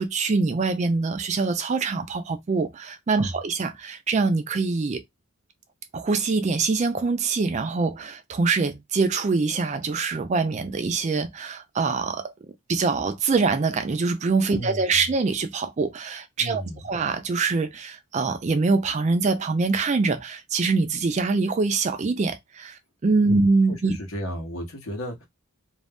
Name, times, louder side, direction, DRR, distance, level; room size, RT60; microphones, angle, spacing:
voice 1, 0.0-5.0 5.9-12.3 12.7-24.0, right 4 dB, 30° right, 0.3 m, -24 dB
voice 2, 14.5-14.8 16.4-16.8 23.2-23.4 23.7-25.3, equal, 70° left, 1.0 m, -33 dB
2.5 x 2.0 x 3.4 m
head